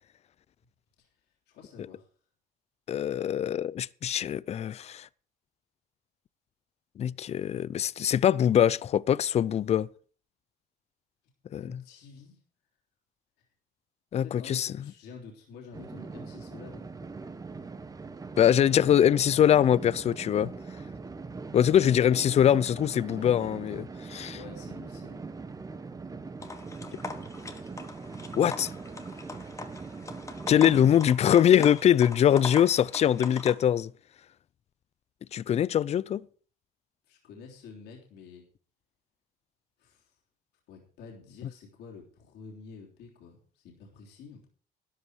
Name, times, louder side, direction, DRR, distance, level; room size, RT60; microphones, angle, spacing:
voice 1, 1.5-2.1 11.6-12.4 14.1-17.1 23.1-23.7 24.3-25.3 37.1-38.5 39.8-40.1 40.7-44.5, left 5 dB, 80° left, 3.4 m, -49 dB
voice 2, 2.9-5.1 7.0-9.9 11.5-11.7 14.1-14.7 18.4-20.5 21.5-23.8 24.1-24.4 28.3-28.7 30.5-33.9 35.3-36.3, left 10 dB, 40° left, 0.5 m, -23 dB
sound 1, 15.7-31.0, right 4 dB, 20° right, 1.1 m, -41 dB
sound 2, 26.4-33.5, left 3 dB, 20° left, 1.5 m, -41 dB
13.0 x 11.0 x 4.8 m
cardioid pair, 110°, 17 cm